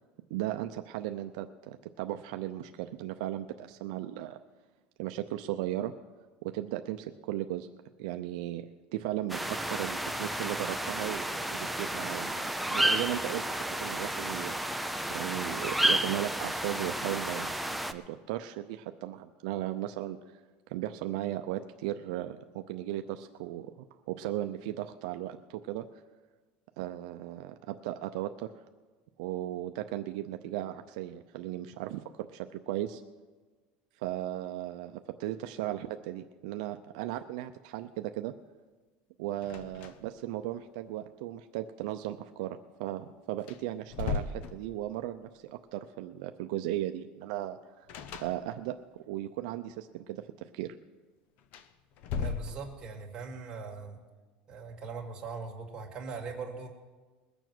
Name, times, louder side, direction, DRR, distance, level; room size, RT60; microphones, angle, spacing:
voice 1, 0.3-4.4 5.0-5.9 6.4-7.7 8.0-12.4 12.7-14.6 15.1-20.2 20.7-23.7 24.1-25.9 26.8-28.5 29.2-33.0 34.0-38.3 39.2-47.9 48.2-48.7 49.1-50.7, right 13 dB, 75° right, 7 dB, 0.6 m, -36 dB
sound 1, 9.3-17.9, right 1 dB, ahead, 0.5 m, -32 dB
sound 2, 39.4-40.3 40.5-40.6 42.9-43.0 43.4-45.1 47.9-48.9 51.4-53.0, left 5 dB, 50° left, 0.8 m, -37 dB
voice 2, 52.1-54.0 54.5-56.7, right 4 dB, 25° right, -1 dB, 2.1 m, -40 dB
21.0 x 7.1 x 6.1 m, 1.3 s
cardioid pair, 165°, 4 cm